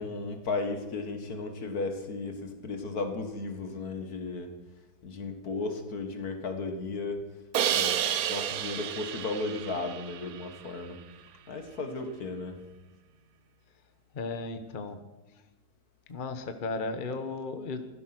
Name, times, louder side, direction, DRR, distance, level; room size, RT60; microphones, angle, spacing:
voice 1, 0.0-4.5 5.0-7.2 7.7-8.0 8.3-11.0 11.5-12.6, left 3 dB, 70° left, 6 dB, 2.2 m, -35 dB
Crash cymbal, 7.5-10.6, right 10 dB, 70° right, 1.1 m, -31 dB
voice 2, 14.1-15.0 16.1-17.8, left 3 dB, 35° left, 7 dB, 1.1 m, -35 dB
15.5 x 12.5 x 6.1 m, 1.1 s
omnidirectional pair, 1.7 m